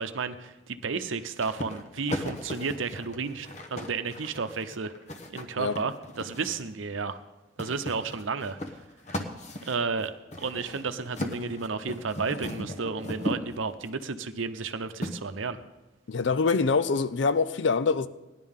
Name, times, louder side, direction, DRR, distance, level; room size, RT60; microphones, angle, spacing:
voice 1, 0.0-4.9 5.3-7.2 7.6-8.8 9.6-10.1 10.4-15.6, right 4 dB, 85° right, 0.7 m, -32 dB
sound 1, 1.4-6.7 7.6-13.9 15.0-15.1, left 1 dB, 35° left, 0.9 m, -37 dB
voice 2, 16.1-18.1, left 4 dB, 70° left, 0.5 m, -24 dB
17.5 x 10.5 x 3.7 m
head